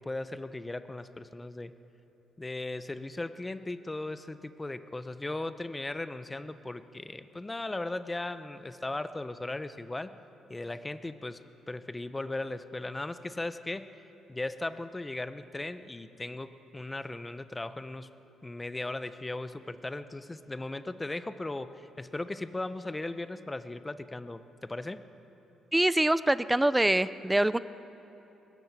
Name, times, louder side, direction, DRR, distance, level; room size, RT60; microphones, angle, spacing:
voice 1, 0.0-1.7 2.4-10.1 10.5-13.9 14.3-18.1 18.4-25.1, left 2 dB, 15° left, 11 dB, 1.0 m, -37 dB
voice 2, 25.7-27.6, right 1 dB, 10° right, 15 dB, 0.6 m, -24 dB
21.5 x 19.5 x 8.3 m, 3.0 s
cardioid pair, 90°, 0 cm